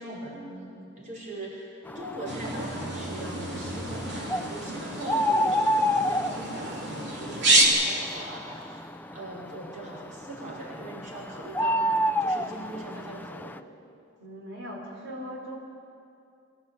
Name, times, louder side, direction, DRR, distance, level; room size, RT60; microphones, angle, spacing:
voice 1, 0.0-1.7 2.0-8.8 9.1-11.9 12.2-13.5, right 1 dB, 40° right, -4 dB, 5.2 m, -40 dB
sound 1, 1.9-13.6, equal, 10° left, 0.5 m, -31 dB
sound 2, 2.3-7.6, right 2 dB, 65° right, 3.3 m, -28 dB
voice 2, 14.2-15.6, equal, 90° right, -1 dB, 4.3 m, -39 dB
23.5 x 16.5 x 8.6 m, 2.5 s
head